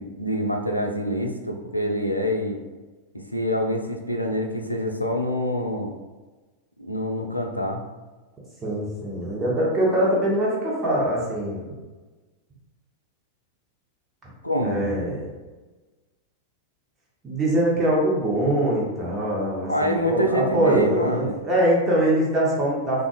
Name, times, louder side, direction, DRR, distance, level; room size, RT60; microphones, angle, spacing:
voice 1, 0.0-2.6 3.1-6.0 6.8-7.8 14.4-14.8 19.7-21.4, equal, 90° left, 3 dB, 0.3 m, -26 dB
voice 2, 8.6-11.6 14.6-15.3 17.2-23.1, right 1 dB, 20° right, -5 dB, 0.8 m, -23 dB
3.6 x 2.4 x 2.3 m, 1.2 s
figure-of-eight pair, 90°, 0 cm